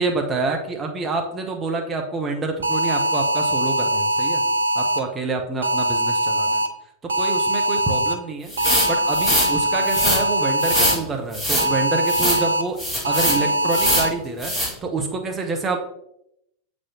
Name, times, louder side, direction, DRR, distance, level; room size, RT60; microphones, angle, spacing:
voice 1, 0.0-4.4 4.7-6.6 7.0-12.8 13.1-15.8, right 3 dB, 20° right, 3 dB, 1.0 m, -27 dB
sound 1, 2.6-5.0 5.6-6.7 7.1-8.2 8.6-10.9 11.6-12.6 13.1-14.1, right 1 dB, 70° right, 0.7 m, -22 dB
sound 2, 8.5-9.5 9.9-10.2 10.6-11.0 11.3-11.7 12.1-12.4 12.8-13.4 13.7-14.1 14.4-14.7, equal, ahead, 2.3 m, -22 dB
7.8 x 4.2 x 3.0 m, 0.77 s
figure-of-eight pair, 90°, 0 cm